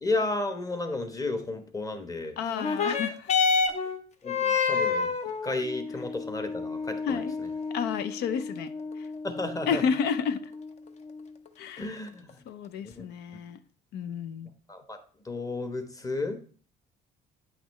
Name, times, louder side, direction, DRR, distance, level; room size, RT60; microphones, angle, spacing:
voice 1, 0.0-2.4 4.2-5.1 5.4-7.2 9.2-9.8 11.8-12.3 12.8-13.0 14.7-15.0 15.2-16.4, left 2 dB, 20° left, 1.1 m, -32 dB
voice 2, 2.4-3.3 7.0-7.3 7.7-8.7 9.6-10.4 11.6-12.0 12.5-13.6 13.9-14.5, left 6 dB, 80° left, 0.7 m, -31 dB
sound 1, 2.5-11.5 12.3-12.4, left 5 dB, 40° left, 0.7 m, -30 dB
8.3 x 5.8 x 3.1 m
cardioid pair, 110°, 17 cm